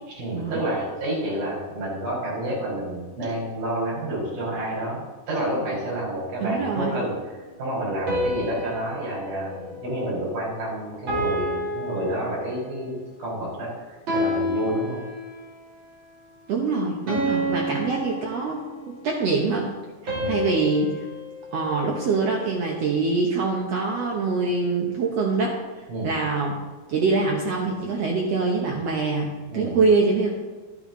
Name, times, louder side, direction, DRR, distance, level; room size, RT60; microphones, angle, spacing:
voice 1, 0.2-7.2 7.6-15.0 17.3-17.4 20.1-20.4 25.9-26.1 29.5-29.8, right 1 dB, 55° right, -6 dB, 5.3 m, -29 dB
voice 2, 6.4-7.0 16.5-19.7 20.0-21.0 21.5-25.6 26.0-26.6 26.9-30.3, right 4 dB, 75° right, -1 dB, 1.4 m, -24 dB
sound 1, 8.1-10.6 11.1-12.8 14.1-15.6 17.1-18.9 20.1-22.4, equal, 35° right, 3.0 m, -30 dB
12.0 x 8.5 x 3.8 m, 1.3 s
omnidirectional pair, 4.3 m